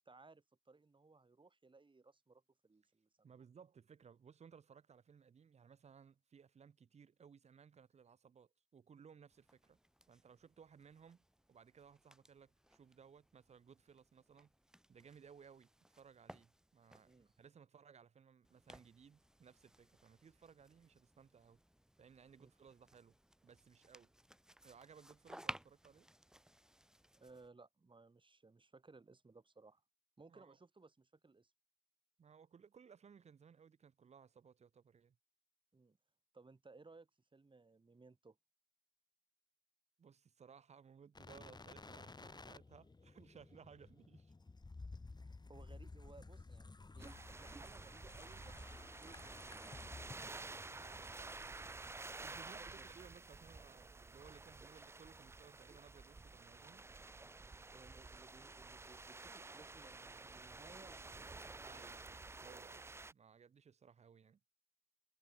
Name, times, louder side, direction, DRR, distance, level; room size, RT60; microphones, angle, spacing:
voice 1, 0.1-3.4 17.0-17.3 22.4-22.5 27.2-29.8 30.2-31.5 35.7-36.0 36.3-38.4 45.3-49.5 52.3-52.9 57.7-62.0, right 3 dB, 50° right, 5.7 m, -62 dB
voice 2, 3.2-9.8 10.1-14.5 14.9-21.6 22.0-23.2 23.4-24.1 24.6-26.1 30.3-30.6 32.2-35.2 40.0-44.3 50.6-51.4 52.2-56.8 61.6-62.1 62.4-64.4, right 6 dB, 85° right, 0.9 m, -62 dB
sound 1, 9.3-17.5 18.4-27.5, equal, 5° right, 0.9 m, -57 dB
sound 2, 41.1-52.4 52.7-52.8, left 3 dB, 40° left, 1.8 m, -55 dB
sound 3, 47.0-63.1, right 3 dB, 25° right, 0.3 m, -52 dB
cardioid pair, 60°, 11 cm